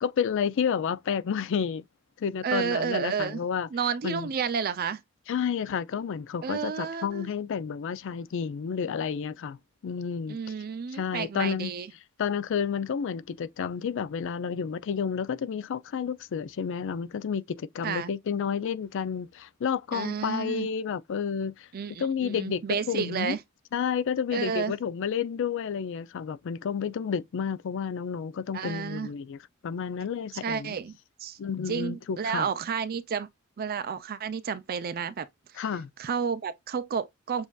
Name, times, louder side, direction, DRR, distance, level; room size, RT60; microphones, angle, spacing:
voice 1, 0.0-1.8 2.2-3.7 4.0-4.3 5.3-9.6 9.8-10.4 10.9-11.7 12.2-21.7 22.0-23.4 23.7-29.4 29.6-30.8 31.4-32.5 35.6-35.9, left 7 dB, 65° left, 0.4 m, -30 dB
voice 2, 2.4-3.4 3.7-5.0 6.4-7.3 10.3-11.9 17.8-18.1 19.9-20.7 21.7-23.4 24.3-24.7 28.5-29.1 30.4-31.4 31.7-33.3 33.6-35.3 35.5-35.6 36.0-37.5, right 6 dB, 45° right, 0.4 m, -31 dB
7.2 x 2.6 x 2.3 m
head